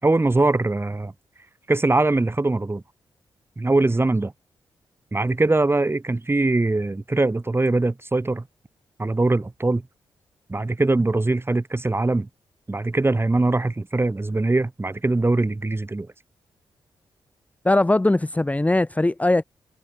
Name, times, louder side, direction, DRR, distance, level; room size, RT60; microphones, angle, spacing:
voice 1, 0.0-1.1 1.7-2.8 3.6-4.3 5.1-8.4 9.0-9.8 10.5-12.3 12.7-16.1, right 2 dB, 25° right, 3.8 m, -22 dB
voice 2, 17.6-19.4, left 2 dB, 15° left, 0.9 m, -20 dB
cardioid pair, 55°, 10 cm